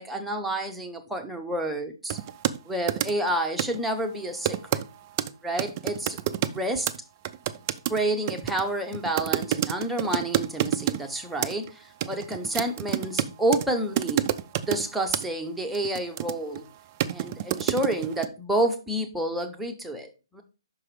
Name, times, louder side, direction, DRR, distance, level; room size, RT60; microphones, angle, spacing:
voice 1, 0.0-2.2 2.7-4.8 5.4-6.9 7.9-14.3 14.7-16.7 17.1-20.4, right 1 dB, 5° right, 2 dB, 0.8 m, -29 dB
sound 1, 2.1-2.6 2.9-3.3 3.6-3.8 4.4-4.9 5.2-5.3 5.6-6.6 6.9-7.0 7.2-11.0 11.4-11.7 12.0-13.6 14.0-14.8 15.1-15.2 15.7-16.6 17.0-18.3, right 12 dB, 30° right, 0.4 m, -28 dB
5.9 x 4.8 x 4.8 m, 0.31 s
figure-of-eight pair, 140°, 3 cm